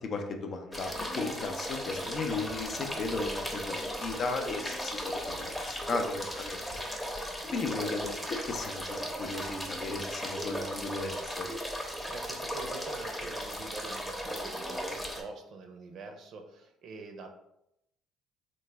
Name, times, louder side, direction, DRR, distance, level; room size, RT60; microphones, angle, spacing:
voice 1, 0.0-5.2 5.6-6.6 7.5-11.5, left 3 dB, 50° left, 4 dB, 0.5 m, -35 dB
sound 1, 0.7-15.2, equal, 5° left, 0.7 m, -36 dB
voice 2, 12.1-17.3, right 3 dB, 65° right, 4 dB, 0.5 m, -45 dB
3.2 x 2.1 x 3.3 m, 0.81 s
supercardioid pair, 85°, 0 cm